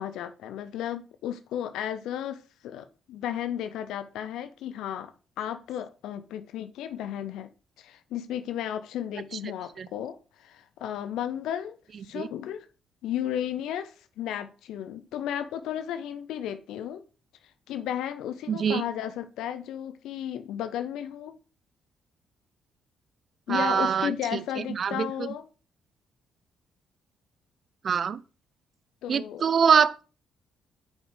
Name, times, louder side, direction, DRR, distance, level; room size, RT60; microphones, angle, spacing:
voice 1, 0.0-5.1 5.4-7.5 7.8-11.8 12.0-12.7 13.0-17.0 17.7-21.4 23.5-25.5 29.0-29.4, left 10 dB, 85° left, 0.4 m, -34 dB
voice 2, 18.5-18.8 23.5-25.3 27.8-28.2 29.1-30.0, right 7 dB, 50° right, 0.4 m, -24 dB
5.3 x 4.7 x 5.0 m
cardioid pair, 90°, 0 cm